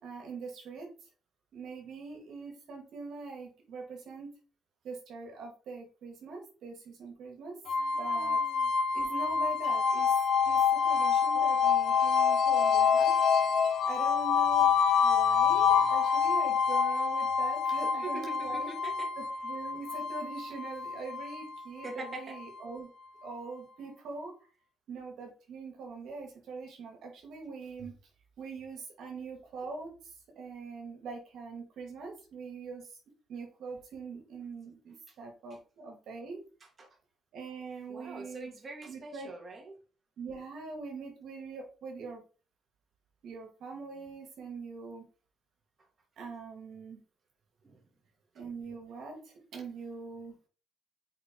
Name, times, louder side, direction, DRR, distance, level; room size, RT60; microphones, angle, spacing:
voice 1, 0.0-0.9 1.5-4.4 4.8-7.6 8.0-8.4 8.9-10.1 10.4-13.2 13.9-14.7 15.0-18.7 19.2-22.9 23.2-24.3 24.9-27.9 28.4-33.0 33.3-36.4 37.3-38.5 38.8-39.3 40.2-42.2 43.2-45.1 46.2-47.0 48.3-50.5, right 4 dB, 75° right, 1 dB, 2.1 m, -43 dB
sound 1, 7.7-22.6, left 6 dB, 75° left, 0.9 m, -27 dB
voice 2, 7.9-8.7 11.3-11.5 18.0-19.1 21.8-22.4 35.1-35.2 36.8-36.9 37.9-39.7 47.6-47.8, right 2 dB, 35° right, 1 dB, 2.4 m, -44 dB
5.9 x 5.1 x 3.8 m, 0.36 s
cardioid pair, 90°, 0 cm